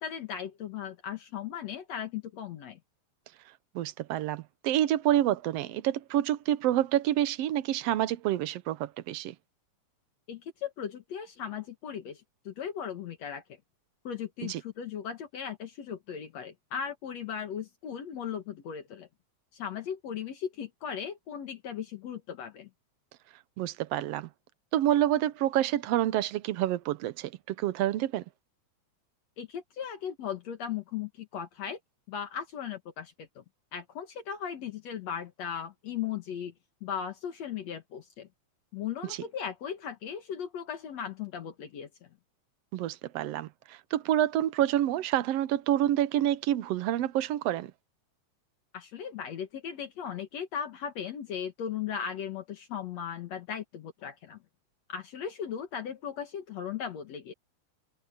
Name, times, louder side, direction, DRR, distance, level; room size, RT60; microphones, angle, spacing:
voice 1, 0.0-2.8 10.3-13.6 14.0-19.1 19.5-22.7 29.4-31.8 32.1-33.4 33.7-36.5 36.8-38.3 38.7-41.9 48.7-54.4 54.9-57.3, left 8 dB, 65° left, 2.6 m, -37 dB
voice 2, 3.8-9.4 14.5-14.6 23.6-24.3 24.7-28.2 39.1-39.2 42.7-47.7, right 12 dB, 70° right, 1.7 m, -28 dB
omnidirectional pair, 3.4 m